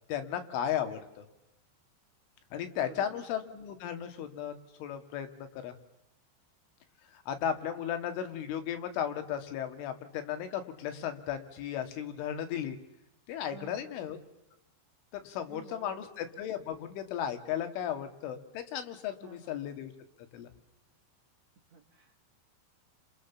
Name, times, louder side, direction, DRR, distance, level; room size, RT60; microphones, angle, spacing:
voice 1, 0.1-1.3 2.5-4.6 4.8-5.7 7.1-12.8 13.3-14.2 15.1-19.9 20.3-20.5, left 9 dB, 85° left, 7 dB, 4.4 m, -35 dB
voice 2, 2.8-3.2 13.5-14.0 15.5-16.1 19.2-19.6 21.7-22.2, right 6 dB, 55° right, 5 dB, 2.1 m, -52 dB
30.0 x 27.5 x 7.1 m, 0.92 s
omnidirectional pair, 5.4 m